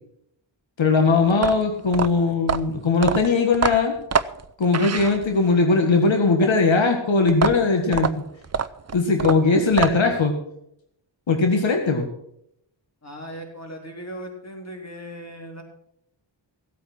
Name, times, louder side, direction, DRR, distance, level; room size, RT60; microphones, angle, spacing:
voice 1, 0.8-3.9 4.6-8.2 8.9-10.3 11.3-12.1, left 4 dB, 85° left, 4 dB, 1.8 m, -19 dB
sound 1, 1.3-5.6 7.3-10.2, right 6 dB, 35° right, 0.6 m, -26 dB
voice 2, 13.0-15.6, equal, 35° left, 1 dB, 3.8 m, -38 dB
16.0 x 8.5 x 6.0 m, 0.74 s
wide cardioid pair, 80°, 45 cm